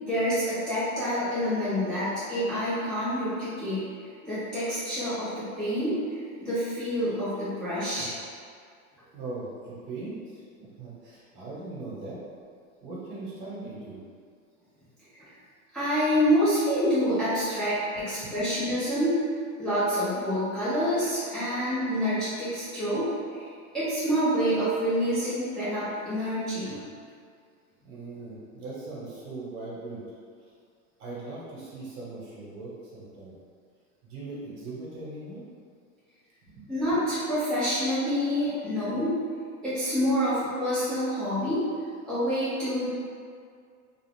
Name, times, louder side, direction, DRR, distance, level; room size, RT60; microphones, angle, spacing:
voice 1, 0.0-3.8 4.2-8.1 15.1-15.3 15.7-19.2 19.6-23.5 23.7-26.7 36.7-39.2 39.6-41.7 42.0-42.9, equal, ahead, -14 dB, 0.5 m, -27 dB
voice 2, 9.1-12.2 12.8-14.0 18.2-18.3 27.8-30.0 31.0-33.3 34.0-35.4 36.4-36.6, right 2 dB, 50° right, -7 dB, 1.2 m, -39 dB
2.4 x 2.4 x 3.3 m, 2.2 s
hypercardioid pair, 125°, 43 cm